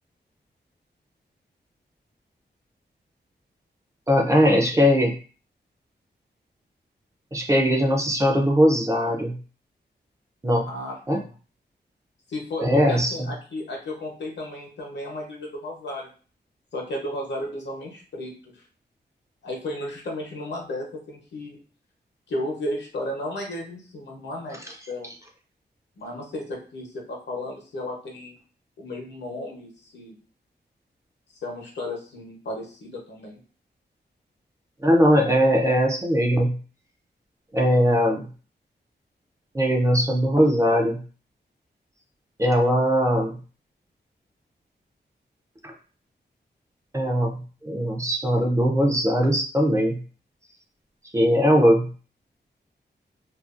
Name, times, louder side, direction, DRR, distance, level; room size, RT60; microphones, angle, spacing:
voice 1, 4.1-5.1 7.3-9.4 10.4-10.7 11.1-11.2 12.6-13.1 34.8-36.6 37.5-38.2 39.5-41.0 42.4-43.4 45.6-45.7 46.9-50.0 51.1-51.9, equal, 15° right, 1 dB, 0.3 m, -20 dB
voice 2, 10.7-11.0 12.3-16.1 16.7-18.6 19.4-21.6 22.3-25.1 26.0-28.4 28.8-30.1 31.4-33.4, left 1 dB, 75° left, -1 dB, 0.8 m, -34 dB
2.5 x 2.2 x 2.4 m, 0.38 s
wide cardioid pair, 160°, 18 cm